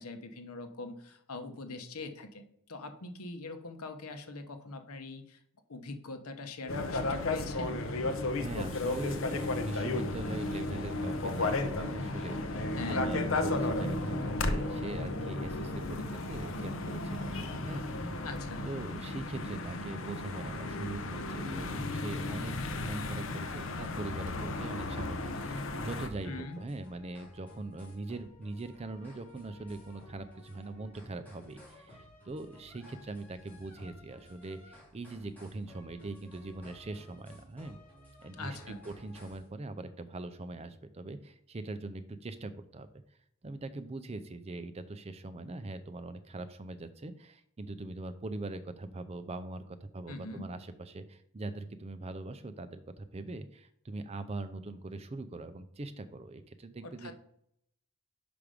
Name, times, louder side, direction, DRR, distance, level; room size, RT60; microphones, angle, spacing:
voice 1, 0.0-2.4 2.7-5.4 5.7-7.8 12.8-13.1 18.2-18.7 26.2-26.6 38.4-38.8 50.1-50.5 56.8-57.1, left 2 dB, 85° left, 7 dB, 1.0 m, -42 dB
sound 1, 6.7-26.1, left 2 dB, 60° left, 0.7 m, -34 dB
voice 2, 8.4-17.9 18.7-37.8 38.2-42.9 43.4-57.1, right 2 dB, 30° right, 12 dB, 0.4 m, -42 dB
sound 2, 24.3-39.5, equal, 5° left, 2.6 m, -55 dB
5.9 x 5.1 x 5.0 m, 0.73 s
head